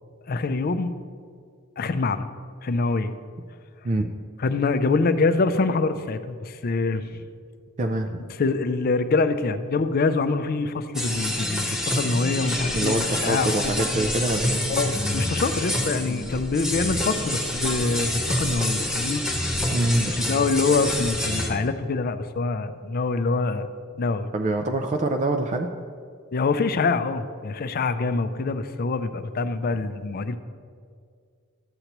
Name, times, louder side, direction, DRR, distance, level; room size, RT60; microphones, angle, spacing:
voice 1, 0.3-0.9 1.8-2.3 2.6-3.1 4.4-7.2 8.4-13.8 14.7-19.2 20.1-23.7 24.0-24.3 26.3-30.4, left 3 dB, 45° left, 11 dB, 0.4 m, -25 dB
voice 2, 7.8-8.2 12.7-14.6 19.7-20.2 24.3-25.7, right 2 dB, 35° right, 4 dB, 0.4 m, -25 dB
sound 1, 10.9-21.5, left 1 dB, 5° right, 1.1 m, -27 dB
13.0 x 8.0 x 3.0 m, 2.2 s
head